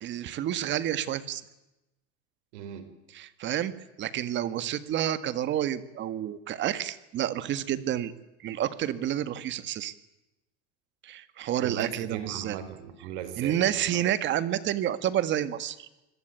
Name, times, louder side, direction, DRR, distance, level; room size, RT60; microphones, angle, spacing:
voice 1, 0.0-1.4 3.1-3.7 4.0-8.1 8.4-9.9 11.0-12.6 13.4-15.9, right 11 dB, 35° right, 13 dB, 1.8 m, -29 dB
voice 2, 2.5-2.9 11.6-14.0, right 9 dB, 80° right, 10 dB, 4.6 m, -38 dB
27.5 x 22.0 x 9.2 m, 0.95 s
cardioid pair, 160°, 33 cm